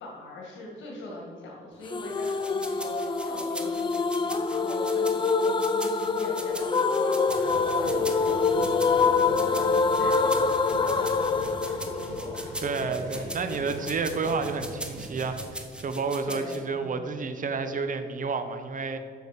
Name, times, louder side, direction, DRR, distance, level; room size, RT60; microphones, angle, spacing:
voice 1, 0.0-14.2 16.3-17.1, left 1 dB, 75° left, -2 dB, 2.0 m, -42 dB
sound 1, 1.9-12.8, left 4 dB, 25° left, 0.5 m, -25 dB
sound 2, 2.1-16.6, right 1 dB, 5° right, 1.1 m, -41 dB
sound 3, 7.2-15.5, right 2 dB, 75° right, 2.6 m, -43 dB
voice 2, 12.6-19.0, right 4 dB, 40° right, 9 dB, 0.9 m, -30 dB
7.0 x 6.9 x 6.5 m, 2.4 s
cardioid pair, 90°, 20 cm